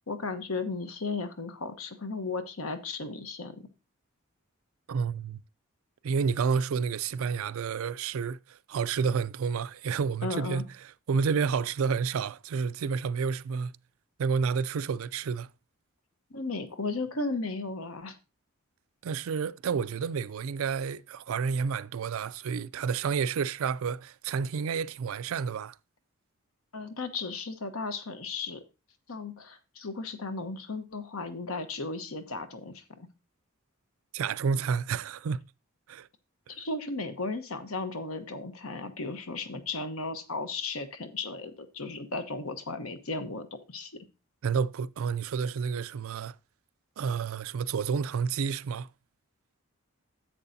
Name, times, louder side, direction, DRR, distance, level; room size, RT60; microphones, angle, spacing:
voice 1, 0.1-3.7 10.2-10.6 16.3-18.2 26.7-28.6 29.1-33.1 36.5-44.0, left 3 dB, 70° left, 1.1 m, -35 dB
voice 2, 4.9-5.4 6.0-13.7 14.2-15.5 19.0-25.8 34.1-35.4 35.9-36.1 44.4-46.4 47.0-48.9, right 6 dB, 70° right, 0.4 m, -30 dB
10.5 x 7.7 x 2.7 m
head